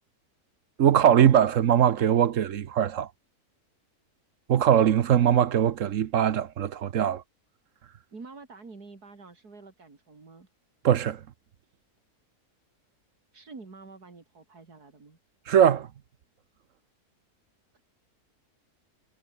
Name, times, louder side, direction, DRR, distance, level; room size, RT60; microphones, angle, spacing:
voice 1, 0.8-3.1 4.5-7.2 10.8-11.2 15.5-15.9, right 9 dB, 60° right, 1.1 m, -21 dB
voice 2, 8.1-10.5 13.3-15.2, right 4 dB, 85° right, 4.1 m, -47 dB
omnidirectional pair, 1.6 m